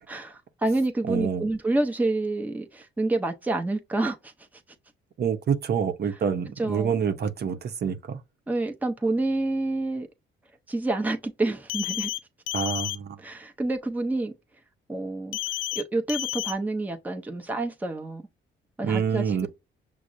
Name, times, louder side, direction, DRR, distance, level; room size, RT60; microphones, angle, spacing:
voice 1, 0.1-4.3 6.6-7.0 8.5-10.1 10.7-12.1 13.2-14.3 14.9-15.4 15.7-18.2 18.8-19.5, right 2 dB, 10° right, 0.7 m, -28 dB
voice 2, 1.1-1.5 5.2-8.2 12.5-13.2 18.8-19.5, right 7 dB, 55° right, 0.7 m, -27 dB
sound 1, 11.7-12.2 12.5-12.9 15.3-15.8 16.1-16.5, left 15 dB, 85° left, 0.4 m, -30 dB
6.0 x 2.0 x 2.5 m
cardioid pair, 90°, 20 cm